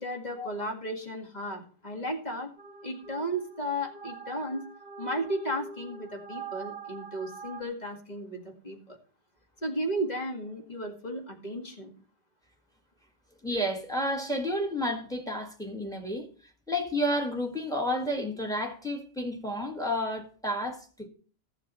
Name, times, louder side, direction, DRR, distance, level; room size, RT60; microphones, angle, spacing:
voice 1, 0.0-2.5 2.8-4.6 5.0-9.0 9.6-11.9, right 1 dB, 40° left, 2.3 m, -34 dB
sound 1, 2.6-7.6, right 5 dB, 60° right, 1.1 m, -44 dB
voice 2, 13.4-16.3 16.7-21.1, equal, 5° left, 1.8 m, -31 dB
14.0 x 7.2 x 5.6 m
omnidirectional pair, 1.2 m